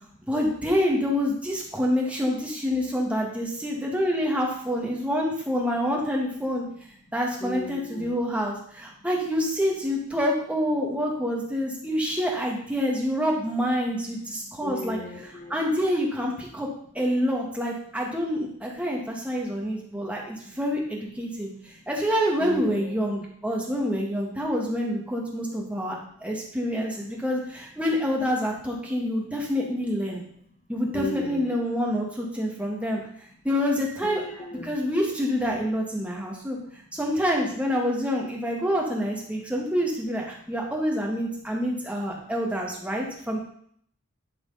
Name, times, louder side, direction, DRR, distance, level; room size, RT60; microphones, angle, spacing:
voice 1, 0.3-6.6 7.1-15.0 15.5-16.7 16.9-26.0 26.2-30.2 30.7-33.0 33.4-34.2 34.6-36.6 36.9-43.4, equal, 5° right, -1 dB, 1.8 m, -27 dB
voice 2, 7.4-8.2 14.6-15.5 22.4-23.0 30.9-31.6 34.0-34.7, equal, 30° left, 1 dB, 1.2 m, -36 dB
12.0 x 4.8 x 5.6 m, 0.63 s
head